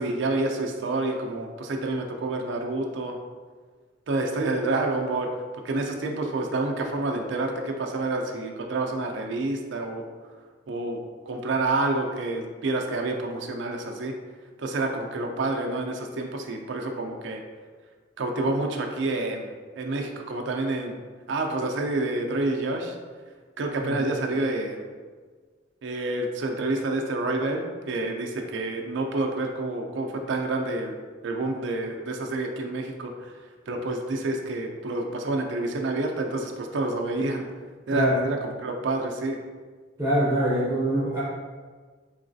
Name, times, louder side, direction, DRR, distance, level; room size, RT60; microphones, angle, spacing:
voice 1, 0.0-3.2 4.1-5.3 5.6-10.0 10.7-14.1 14.6-17.4 18.2-21.0 21.3-23.0 23.6-24.8 25.8-31.0 31.2-37.4 37.9-39.4, right 2 dB, 65° right, 2 dB, 0.4 m, -28 dB
voice 2, 37.9-38.2 40.0-41.2, equal, 15° right, -8 dB, 0.5 m, -24 dB
3.9 x 3.1 x 2.6 m, 1.5 s
head